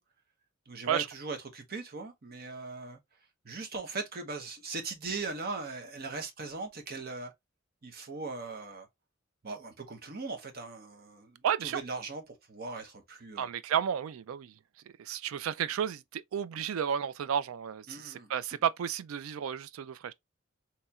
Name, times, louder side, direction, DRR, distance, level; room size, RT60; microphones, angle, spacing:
voice 1, 0.7-3.0 3.4-7.3 7.8-8.9 9.4-13.5 17.9-18.3, right 3 dB, 50° right, 0.9 m, -39 dB
voice 2, 11.4-11.8 13.4-14.5 15.0-20.1, right 8 dB, 90° right, 0.3 m, -32 dB
4.2 x 2.9 x 2.3 m
head